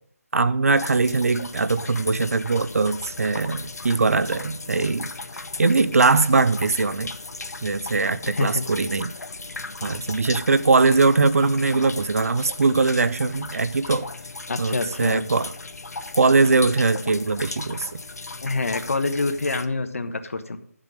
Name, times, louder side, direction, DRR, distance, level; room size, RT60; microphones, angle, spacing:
voice 1, 0.3-5.1 5.6-7.1 7.6-9.1 9.8-14.1 14.6-15.5 16.1-17.9, right 3 dB, 65° right, 0.7 m, -21 dB
sound 1, 0.7-19.7, left 3 dB, 80° left, 0.8 m, -37 dB
voice 2, 8.2-8.6 14.5-15.3 18.4-20.6, left 3 dB, 60° left, 1.2 m, -26 dB
11.0 x 7.4 x 5.1 m
figure-of-eight pair, 170°, 9 cm